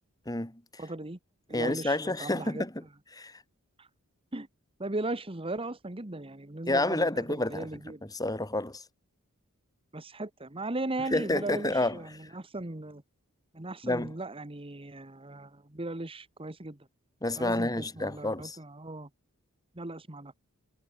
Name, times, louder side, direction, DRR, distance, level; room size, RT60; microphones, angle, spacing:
voice 1, 0.3-0.8 1.5-2.8 3.1-3.4 6.6-8.8 11.1-12.3 13.8-14.1 17.2-18.6, left 2 dB, 15° left, 2.6 m, -30 dB
voice 2, 0.8-1.2 1.5-2.6 3.8-3.9 4.3-4.5 4.8-8.0 9.9-13.0 13.5-16.8 17.4-19.1 19.8-20.3, right 2 dB, 25° right, 1.5 m, -37 dB
head